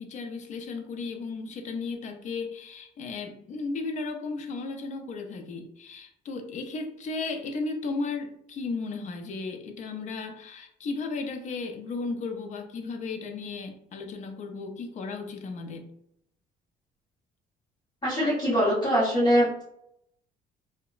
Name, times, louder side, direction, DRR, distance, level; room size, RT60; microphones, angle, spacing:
voice 1, 0.0-15.9, left 3 dB, 45° left, 5 dB, 0.5 m, -35 dB
voice 2, 18.0-19.6, equal, 25° left, -8 dB, 0.9 m, -23 dB
2.8 x 2.1 x 2.3 m, 0.75 s
cardioid pair, 110°, 17 cm